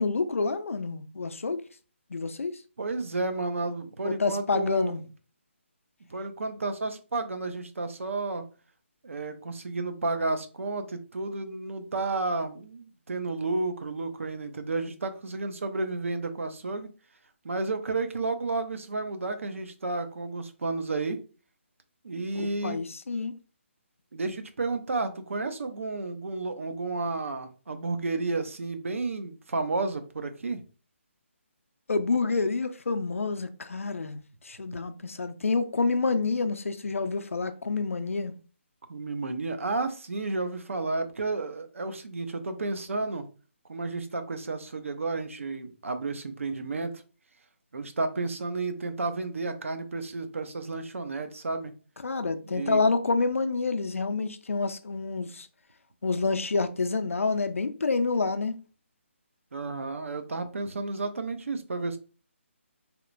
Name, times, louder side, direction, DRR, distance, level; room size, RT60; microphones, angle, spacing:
voice 1, 0.0-1.6 2.1-2.6 4.0-5.0 22.3-23.3 31.9-38.3 52.0-55.5 56.0-58.6, left 4 dB, 85° left, 0.4 m, -28 dB
voice 2, 2.8-4.9 6.1-8.4 9.0-16.9 17.4-21.2 22.0-22.8 24.1-30.6 38.9-43.3 43.7-47.0 47.7-51.7 52.5-52.8 59.5-62.0, right 3 dB, 75° right, 0.5 m, -32 dB
2.9 x 2.1 x 2.4 m
figure-of-eight pair, 155°, 7 cm